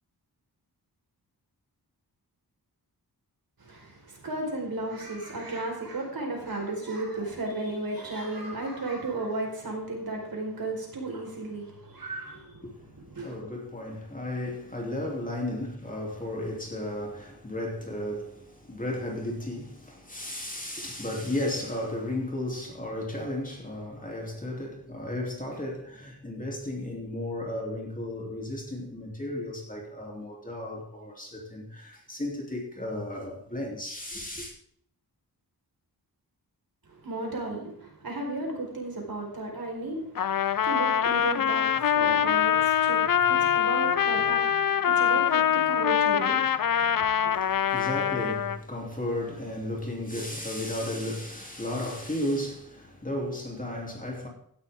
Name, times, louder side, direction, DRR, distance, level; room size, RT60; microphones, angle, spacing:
voice 1, 3.6-12.6 13.1-13.4 36.9-40.1 40.6-47.3, right 2 dB, 65° right, 4.8 m, -34 dB
voice 2, 12.6-34.5 47.2-54.3, left 1 dB, 20° left, 3.2 m, -34 dB
Trumpet, 40.2-48.6, left 9 dB, 60° left, 0.6 m, -24 dB
16.0 x 12.0 x 3.7 m
wide cardioid pair, 120°, 39 cm